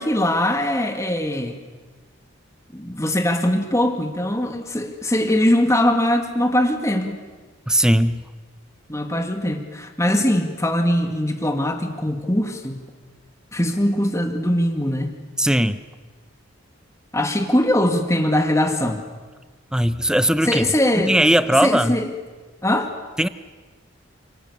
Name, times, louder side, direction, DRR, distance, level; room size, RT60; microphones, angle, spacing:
voice 1, 0.0-1.6 2.7-7.2 8.9-12.8 13.5-15.2 17.1-19.0 20.4-21.2 21.6-22.1 22.6-22.9, left 1 dB, 15° left, 5 dB, 2.3 m, -21 dB
voice 2, 7.7-8.2 15.4-15.8 19.7-20.7 21.0-22.0 23.2-23.3, right 1 dB, 5° right, 12 dB, 0.8 m, -18 dB
29.5 x 28.0 x 6.9 m, 1.4 s
head